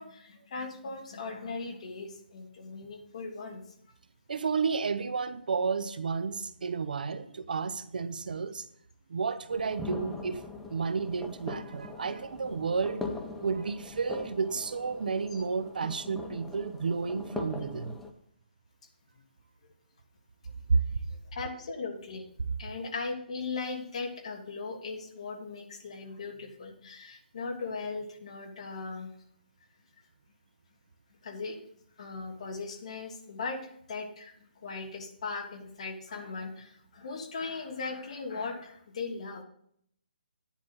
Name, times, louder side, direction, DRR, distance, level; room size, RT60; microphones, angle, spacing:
voice 1, 0.0-3.6 15.3-15.4 19.6-19.7 20.4-20.8 21.1-22.3 22.6-29.1 31.2-31.6 32.0-34.3 34.6-39.4, left 4 dB, 35° left, 4 dB, 1.6 m, -38 dB
voice 2, 4.3-8.6 9.1-10.4 10.7-13.0 13.4-18.0 20.7-20.8, right 5 dB, 55° right, 13 dB, 0.8 m, -31 dB
sound 1, 9.5-18.1, left 3 dB, 5° left, 0.4 m, -41 dB
12.0 x 10.0 x 4.0 m, 0.67 s
hypercardioid pair, 175°, 6 cm